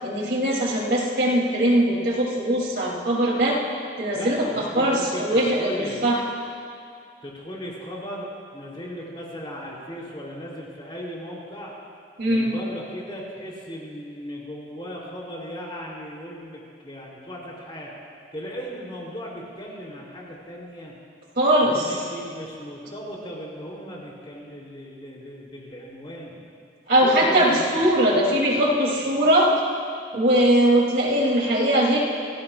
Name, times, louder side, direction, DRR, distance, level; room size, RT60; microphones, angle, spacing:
voice 1, 0.0-3.6 4.0-6.2 12.2-12.5 21.4-21.9 26.9-29.5 30.1-32.0, right 1 dB, 65° right, -3 dB, 3.0 m, -21 dB
voice 2, 4.1-6.0 7.2-11.7 12.3-17.9 18.3-20.9 21.6-26.4 27.0-27.6 29.2-29.4, equal, 30° left, -3 dB, 3.2 m, -37 dB
29.5 x 15.5 x 2.4 m, 2.4 s
head